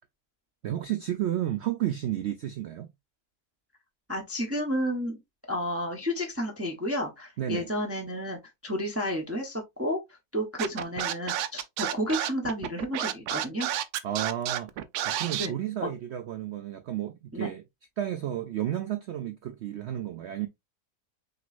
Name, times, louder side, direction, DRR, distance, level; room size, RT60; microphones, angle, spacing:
voice 1, 0.6-2.9 7.4-7.7 14.0-14.7 15.0-17.6 18.0-20.5, right 11 dB, 65° right, 0.7 m, -32 dB
voice 2, 4.1-5.2 5.5-13.7 15.3-15.5 15.8-15.9 17.3-17.5, equal, 10° right, 0.7 m, -31 dB
Scratching (performance technique), 10.6-15.5, right 11 dB, 90° right, 1.1 m, -30 dB
6.0 x 3.0 x 2.5 m
omnidirectional pair, 1.6 m